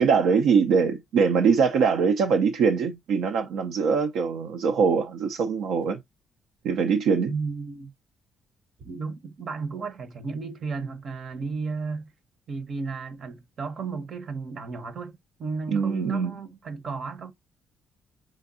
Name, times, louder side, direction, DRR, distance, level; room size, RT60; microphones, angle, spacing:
voice 1, 0.0-6.0 6.6-7.3 15.7-16.4, right 5 dB, 85° right, 0.5 m, -22 dB
voice 2, 7.2-7.9 8.8-12.1 12.5-17.3, right 4 dB, 55° right, 0.8 m, -33 dB
5.0 x 3.4 x 2.5 m
cardioid pair, 90°, 0 cm